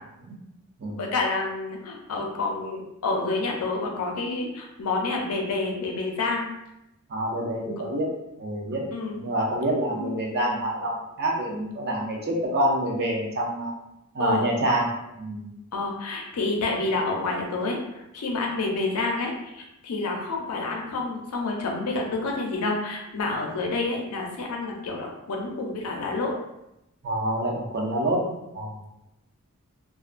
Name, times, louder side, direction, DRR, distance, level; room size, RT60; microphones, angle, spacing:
voice 1, 1.0-6.5 8.9-9.2 9.9-10.1 14.2-14.5 15.7-26.3, left 3 dB, 75° left, 1 dB, 0.5 m, -28 dB
voice 2, 7.1-8.1 8.4-8.9 9.2-13.7 14.1-14.9 15.2-15.5 27.0-28.2 28.5-28.8, right 1 dB, 45° right, -2 dB, 0.5 m, -26 dB
2.4 x 2.2 x 2.4 m, 0.90 s
head